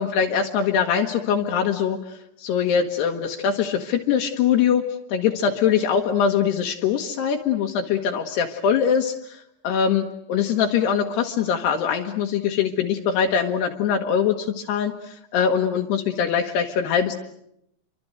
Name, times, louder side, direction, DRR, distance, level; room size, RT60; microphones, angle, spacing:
voice 1, 0.0-17.2, left 7 dB, 75° left, 3 dB, 3.3 m, -23 dB
28.5 x 24.5 x 7.9 m, 0.77 s
omnidirectional pair, 5.1 m